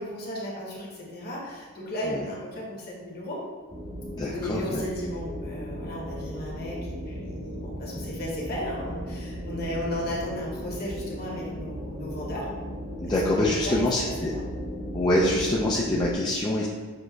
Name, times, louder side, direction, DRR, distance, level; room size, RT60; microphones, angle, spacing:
voice 1, 0.0-3.4 4.2-12.5 13.0-14.1, left 1 dB, 45° left, -4 dB, 1.0 m, -35 dB
sound 1, 3.7-16.1, equal, 45° right, 1.0 m, -36 dB
voice 2, 4.2-4.8 13.0-14.3 14.9-16.7, left 1 dB, 20° left, -5 dB, 0.3 m, -25 dB
6.2 x 2.5 x 2.3 m, 1.5 s
head